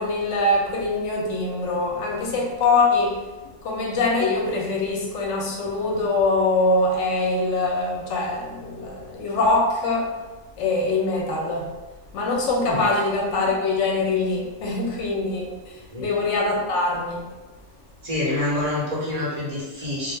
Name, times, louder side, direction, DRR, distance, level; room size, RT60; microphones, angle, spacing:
voice 1, 0.0-3.2 3.6-10.1 10.6-11.7 12.1-17.3, left 2 dB, 75° left, -1 dB, 0.9 m, -23 dB
voice 2, 18.0-20.1, left 2 dB, 30° right, -7 dB, 0.8 m, -27 dB
2.3 x 2.0 x 3.2 m, 1.2 s
omnidirectional pair, 1.3 m